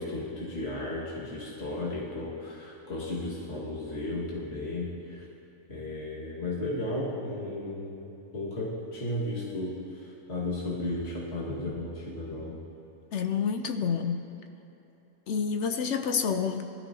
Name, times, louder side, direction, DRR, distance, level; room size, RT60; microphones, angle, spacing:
voice 1, 0.0-5.2 5.7-8.0 8.3-12.6, left 1 dB, 45° left, -6 dB, 2.1 m, -34 dB
voice 2, 13.1-14.3 15.3-16.6, left 6 dB, 65° left, 7 dB, 0.8 m, -28 dB
19.0 x 13.0 x 2.8 m, 2.9 s
omnidirectional pair, 1.5 m